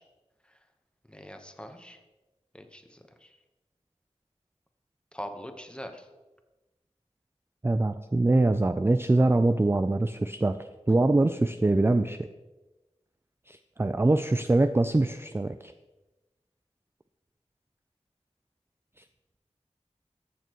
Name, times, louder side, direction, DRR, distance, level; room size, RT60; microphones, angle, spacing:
voice 1, 1.1-2.0 2.5-2.8 5.1-6.0, equal, 10° left, 6 dB, 1.1 m, -41 dB
voice 2, 7.6-10.6 10.9-12.2 13.5-15.7, right 2 dB, 20° right, 9 dB, 0.3 m, -23 dB
14.0 x 6.8 x 3.1 m, 1.1 s
wide cardioid pair, 45°, 12 cm